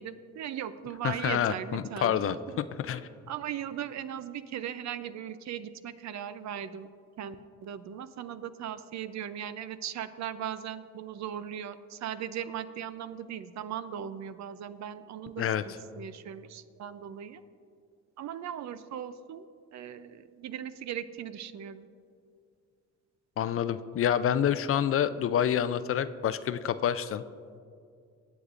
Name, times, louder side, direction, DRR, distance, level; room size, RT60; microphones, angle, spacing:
voice 1, 0.0-2.6 3.3-6.9 7.2-7.4 7.6-17.4 18.2-19.5 19.7-21.9, right 9 dB, 65° right, 13 dB, 0.6 m, -38 dB
voice 2, 1.0-3.1 15.4-15.6 23.4-27.2, left 9 dB, 50° left, 14 dB, 0.4 m, -28 dB
19.0 x 8.0 x 2.5 m, 2.3 s
cardioid pair, 90°, 30 cm